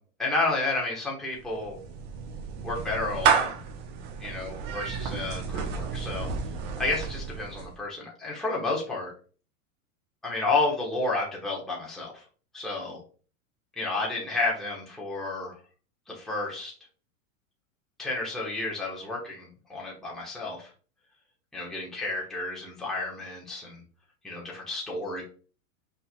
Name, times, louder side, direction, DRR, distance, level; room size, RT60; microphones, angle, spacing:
voice 1, 0.2-1.8 2.6-3.6 4.2-6.3 6.8-9.1 10.2-12.2 12.5-13.0 13.8-15.6 16.1-16.7 18.0-20.7 21.5-23.8 24.2-25.2, left 3 dB, ahead, -4 dB, 1.1 m, -31 dB
Clapping / Meow, 1.3-7.8, right 6 dB, 50° right, 1.0 m, -31 dB
5.5 x 3.6 x 2.2 m, 0.38 s
supercardioid pair, 135°, 40 cm